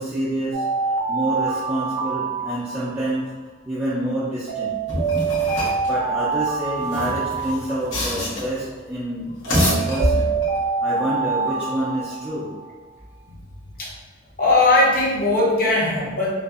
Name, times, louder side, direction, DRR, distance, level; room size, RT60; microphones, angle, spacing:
voice 1, 0.0-3.3 3.6-4.8 5.8-9.3 9.5-10.3 10.8-12.5, right 1 dB, 5° right, -10 dB, 0.3 m, -27 dB
Alarm, 0.5-3.1 4.5-8.1 9.5-12.7, right 5 dB, 75° right, 0.5 m, -26 dB
sound 1, 4.9-5.9 6.8-8.6 9.3-10.6, left 1 dB, 90° left, 0.9 m, -25 dB
voice 2, 14.4-16.3, left 2 dB, 45° left, -4 dB, 0.6 m, -18 dB
2.6 x 2.3 x 2.3 m, 1.4 s
head